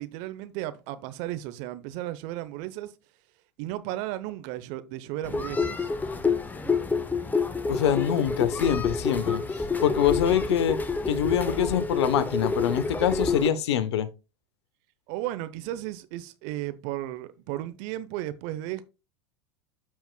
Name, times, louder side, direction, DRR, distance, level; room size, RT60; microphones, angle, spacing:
voice 1, 0.0-2.9 3.6-5.9 15.1-18.8, right 14 dB, 55° right, 0.8 m, -34 dB
sound 1, 5.2-13.5, left 4 dB, 10° left, 0.8 m, -28 dB
voice 2, 7.7-9.4 9.8-10.8 11.1-14.1, left 9 dB, 75° left, 0.9 m, -25 dB
13.0 x 4.6 x 2.2 m
hypercardioid pair, 95°, 14 cm